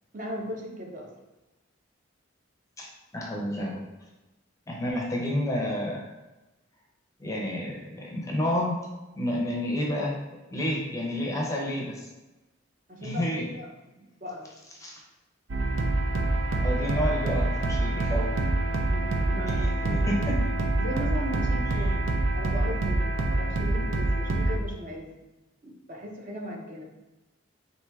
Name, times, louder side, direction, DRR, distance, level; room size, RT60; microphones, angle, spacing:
voice 1, 0.1-1.1 12.9-13.7 14.0-14.5 18.8-20.2 20.8-25.2 25.6-26.8, equal, 40° right, -1 dB, 0.6 m, -37 dB
voice 2, 3.1-3.9 4.7-6.1 7.2-8.8 9.2-10.1 10.5-12.1 13.0-13.4 14.8-15.0 16.6-18.3 19.6-19.7 20.1-20.4, left 1 dB, 15° left, -2 dB, 0.6 m, -30 dB
sound 1, 15.5-24.6, right 2 dB, 80° right, 0.6 m, -26 dB
4.5 x 2.6 x 3.4 m, 1.1 s
head